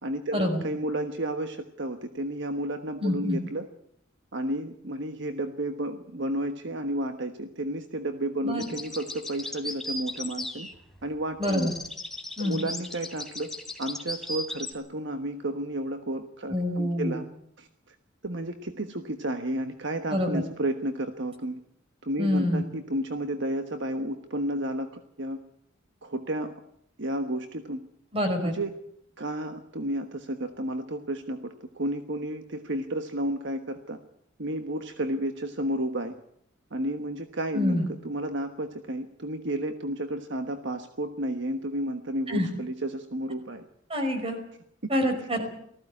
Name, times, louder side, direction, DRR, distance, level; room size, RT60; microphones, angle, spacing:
voice 1, 0.0-3.6 4.3-10.7 11.0-11.7 12.4-13.5 13.8-17.3 17.6-17.9 18.2-21.6 22.0-24.9 25.2-25.4 26.0-26.5 27.0-27.8 28.4-28.7 29.2-34.0 34.4-36.1 36.7-37.8 38.0-43.7, right 1 dB, 65° right, 7 dB, 1.4 m, -32 dB
voice 2, 3.0-3.4 8.4-8.6 11.4-11.7 12.4-12.6 16.5-17.1 20.1-20.4 22.2-22.6 28.1-28.5 37.5-37.9 42.3-42.5 43.9-44.4 44.9-45.4, left 1 dB, 30° right, 5 dB, 5.2 m, -26 dB
sound 1, 8.6-11.1 11.4-14.7, left 2 dB, ahead, 3.1 m, -37 dB
19.0 x 15.5 x 9.9 m, 0.72 s
head